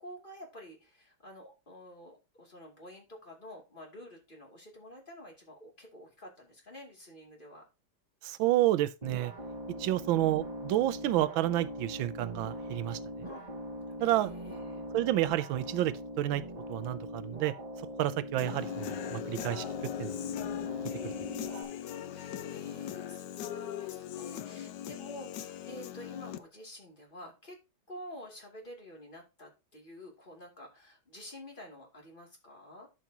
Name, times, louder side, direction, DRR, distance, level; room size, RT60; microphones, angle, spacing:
voice 1, 0.0-7.7 10.0-10.5 13.2-13.5 14.0-14.8 20.9-27.6 27.9-32.9, left 1 dB, 25° left, 2.7 m, -50 dB
voice 2, 8.2-9.3 9.8-13.0 14.0-14.3 14.9-16.4 16.7-17.5 18.0-19.6 20.0-20.2, right 14 dB, 90° right, 1.4 m, -29 dB
sound 1, 9.0-21.6, equal, 20° right, 1.9 m, -42 dB
Human voice / Guitar, 18.4-26.4, left 10 dB, 75° left, 1.2 m, -39 dB
12.0 x 6.0 x 2.8 m
omnidirectional pair, 2.1 m